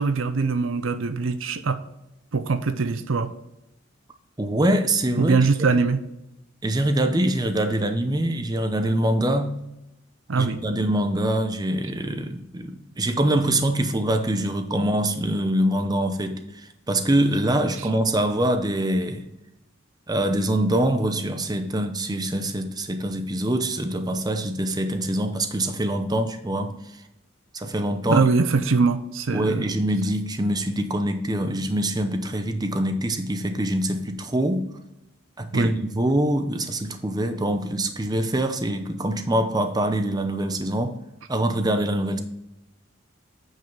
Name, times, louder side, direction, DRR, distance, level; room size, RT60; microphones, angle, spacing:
voice 1, 0.0-1.8 2.3-3.3 5.2-6.0 10.3-10.6 28.1-29.7 35.5-35.7, right 4 dB, 75° right, 0.6 m, -22 dB
voice 2, 4.4-5.4 6.6-9.6 10.4-19.2 20.1-26.8 27.5-28.3 29.3-34.7 35.4-41.0 41.3-42.2, right 1 dB, 20° right, 0.6 m, -24 dB
9.0 x 5.6 x 3.8 m
head